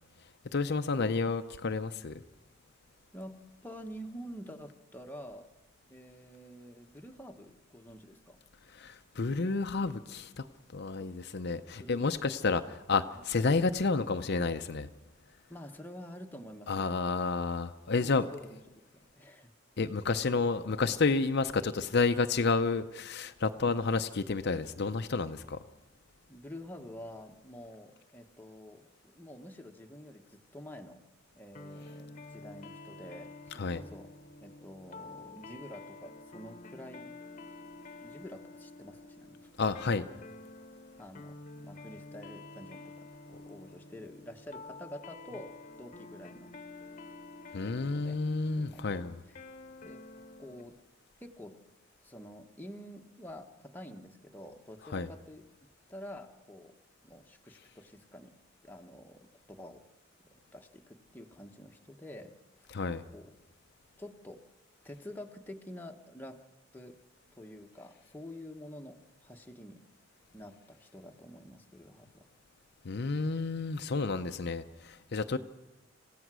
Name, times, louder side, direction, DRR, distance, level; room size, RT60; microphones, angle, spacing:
voice 1, 0.5-2.2 8.8-10.5 10.7-14.9 16.7-18.2 19.8-25.6 33.6-33.8 39.6-40.1 47.5-49.2 54.9-55.1 62.7-63.0 72.8-75.4, left 4 dB, 55° left, 9 dB, 0.6 m, -30 dB
voice 2, 3.1-5.5 5.9-8.4 11.0-11.4 11.8-12.2 15.5-16.9 18.0-19.5 26.3-31.0 31.3-34.1 34.4-37.5 38.0-39.5 41.0-45.5 45.8-46.5 47.9-48.2 48.5-49.4 49.8-50.0 50.4-50.8 51.2-51.6 52.0-55.4 55.9-56.7 57.0-58.4 58.6-59.8 60.2-62.8 63.1-63.3 64.0-64.4 64.8-66.4 66.7-67.0 67.3-69.8 70.3-72.3, equal, 10° left, 3 dB, 1.2 m, -48 dB
sound 1, 31.5-50.7, left 3 dB, 40° left, 1.1 m, -49 dB
27.5 x 16.0 x 6.2 m, 1.0 s
head